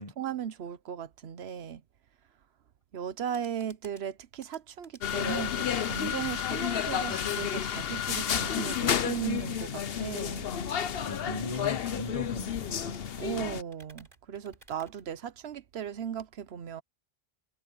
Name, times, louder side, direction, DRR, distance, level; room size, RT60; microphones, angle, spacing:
voice 1, 0.0-1.8 2.9-10.5 13.2-16.8, right 8 dB, 85° right, 1.1 m, -37 dB
sound 1, 3.3-15.7, right 2 dB, 50° right, 4.1 m, -60 dB
sound 2, 5.0-13.6, left 8 dB, 70° left, 1.0 m, -31 dB
voice 2, 7.1-7.5 10.8-13.0, left 3 dB, 35° left, 1.3 m, -39 dB
omnidirectional pair, 1.0 m